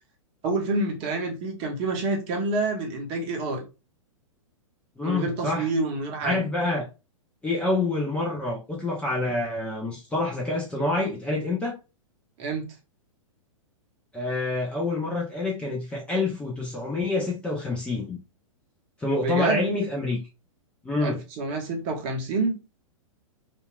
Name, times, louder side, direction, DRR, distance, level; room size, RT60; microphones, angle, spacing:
voice 1, 0.4-3.6 5.0-6.4 12.4-12.7 19.2-19.6 21.0-22.5, right 2 dB, 35° right, 0.8 m, -27 dB
voice 2, 5.0-5.7 6.2-6.9 7.4-11.8 14.1-18.2 19.0-20.2 20.8-21.2, left 2 dB, 5° left, 0.5 m, -27 dB
2.8 x 2.4 x 2.3 m
figure-of-eight pair, 105°, 17 cm